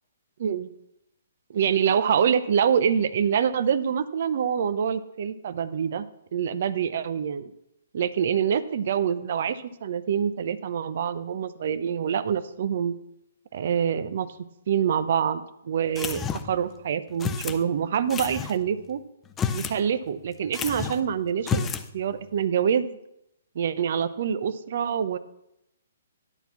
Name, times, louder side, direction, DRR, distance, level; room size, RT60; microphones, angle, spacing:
voice 1, 0.4-0.7 1.5-6.1 6.3-7.5 7.9-13.0 13.5-14.3 14.7-16.2 16.5-19.0 19.5-21.7 21.9-23.0 23.5-25.2, right 8 dB, 55° right, 15 dB, 0.6 m, -25 dB
sound 1, 16.0-16.6 17.2-17.6 18.1-18.6 19.3-19.8 20.1-20.2 20.5-21.0 21.4-21.9, left 7 dB, 15° left, 0.7 m, -30 dB
11.0 x 4.5 x 7.1 m, 0.82 s
hypercardioid pair, 130°, 0 cm